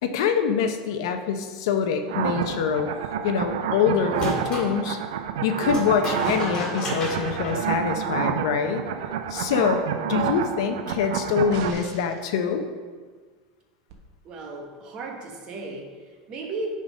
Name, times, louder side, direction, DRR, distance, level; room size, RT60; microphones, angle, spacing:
voice 1, 0.0-2.9 3.2-5.0 5.4-8.8 9.3-9.8 10.1-12.7, left 6 dB, 75° left, 6 dB, 0.7 m, -25 dB
sound 1, 2.1-11.7, right 8 dB, 90° right, 0.5 m, -29 dB
sound 2, 4.1-4.7 5.7-8.4, equal, 25° left, 1.9 m, -33 dB
sound 3, 11.5-12.3 13.9-14.0, right 3 dB, 60° right, 1.1 m, -42 dB
voice 2, 14.2-16.7, right 3 dB, 35° right, 1 dB, 1.2 m, -35 dB
9.2 x 3.8 x 5.2 m, 1.5 s
supercardioid pair, 145°, 2 cm